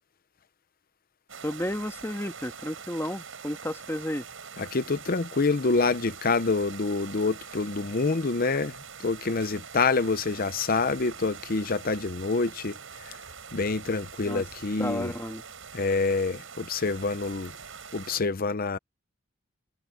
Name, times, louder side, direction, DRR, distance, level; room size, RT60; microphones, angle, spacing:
sound 1, 1.3-18.2, right 6 dB, 85° right, 5.1 m, -44 dB
voice 1, 1.4-4.3 14.2-14.4 14.8-15.4, left 1 dB, 15° left, 2.2 m, -32 dB
voice 2, 4.6-8.7 9.0-12.8 13.5-15.1 15.7-17.5 17.9-18.8, left 4 dB, 50° left, 0.8 m, -27 dB
head